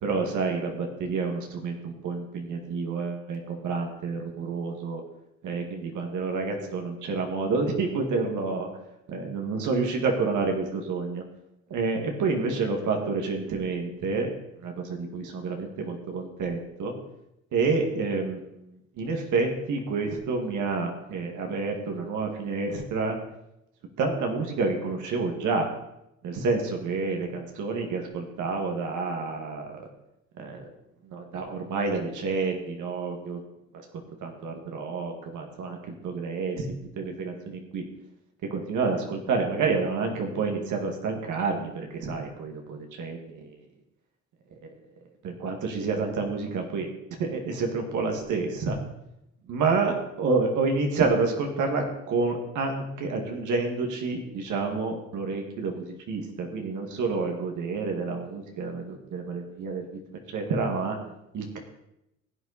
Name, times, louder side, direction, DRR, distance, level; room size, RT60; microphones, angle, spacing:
voice 1, 0.0-5.0 5.4-8.7 9.1-11.2 11.7-14.3 14.6-16.9 17.5-18.6 19.0-23.2 24.0-25.7 26.2-29.8 30.4-30.7 31.0-33.4 33.7-33.9 34.2-35.8 36.0-37.8 38.5-43.5 45.2-46.9 47.2-48.8 49.5-59.8 60.3-61.0 61.3-61.6, right 4 dB, 80° right, 2 dB, 2.0 m, -29 dB
15.5 x 8.4 x 4.2 m, 0.85 s
cardioid pair, 90°, 30 cm